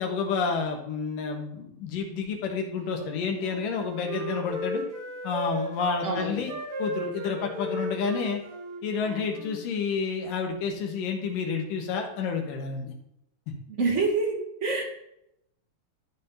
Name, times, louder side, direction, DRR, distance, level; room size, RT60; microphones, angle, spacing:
voice 1, 0.0-4.8 5.2-6.5 6.8-8.4 8.8-12.9 13.5-13.6, left 5 dB, 80° left, 3 dB, 3.1 m, -30 dB
Wind instrument woodwind instrument, 2.8-6.0 6.5-9.6, right 2 dB, 60° right, 3.2 m, -36 dB
voice 2, 6.0-6.4 13.8-14.8, right 3 dB, 30° right, 0 dB, 1.5 m, -26 dB
12.5 x 4.3 x 5.5 m, 0.80 s
omnidirectional pair, 3.9 m